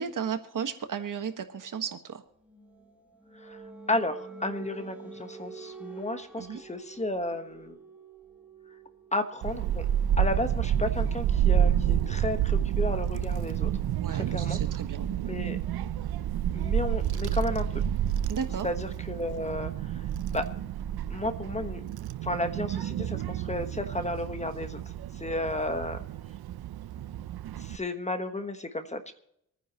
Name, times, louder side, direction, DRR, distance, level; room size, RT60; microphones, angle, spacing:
voice 1, 0.0-2.2 6.3-6.6 14.0-15.1 18.3-18.7, right 7 dB, 55° right, 8 dB, 1.5 m, -34 dB
sound 1, 2.4-14.0, right 4 dB, 5° right, 2.5 m, -48 dB
voice 2, 3.3-7.8 9.1-9.9 10.2-13.7 14.1-14.6 15.2-15.6 16.5-17.8 18.6-20.1 20.3-20.4 21.1-21.8 22.2-24.8 25.1-26.0 27.6-29.1, left 2 dB, 20° left, 8 dB, 1.3 m, -33 dB
Child speech kid speaking / Wind, 9.4-27.8, right 10 dB, 80° right, 0.6 m, -29 dB
26.0 x 9.9 x 3.0 m, 0.78 s
cardioid pair, 105°, 37 cm